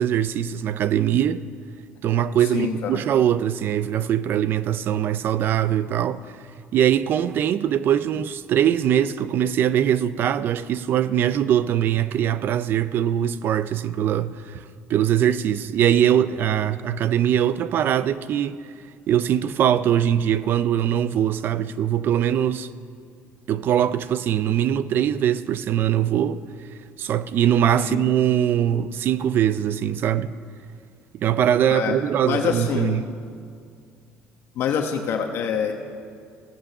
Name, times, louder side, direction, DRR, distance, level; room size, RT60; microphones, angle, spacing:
voice 1, 0.0-1.5 2.0-6.2 6.7-14.6 14.9-18.6 19.1-22.7 23.5-26.4 27.0-30.3 31.2-33.1, right 10 dB, 50° right, 0.5 m, -22 dB
voice 2, 2.5-3.0 27.8-28.0 31.7-31.9 32.2-33.0 34.6-35.8, left 7 dB, 60° left, 1.1 m, -25 dB
16.0 x 8.7 x 6.7 m
cardioid pair, 155°, 5 cm